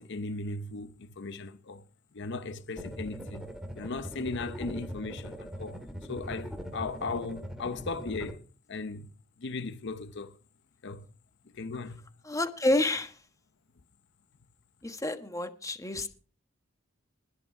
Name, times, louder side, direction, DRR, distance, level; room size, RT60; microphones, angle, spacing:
voice 1, 0.0-1.8 2.1-5.8 6.1-8.4 8.7-9.1 9.4-10.4 10.8-11.1 11.5-12.0, left 3 dB, 60° left, 0.8 m, -37 dB
sound 1, 2.8-8.3, equal, 5° right, 1.9 m, -41 dB
voice 2, 12.2-13.2 14.8-16.1, left 1 dB, 15° left, 1.2 m, -29 dB
20.0 x 6.7 x 4.9 m
head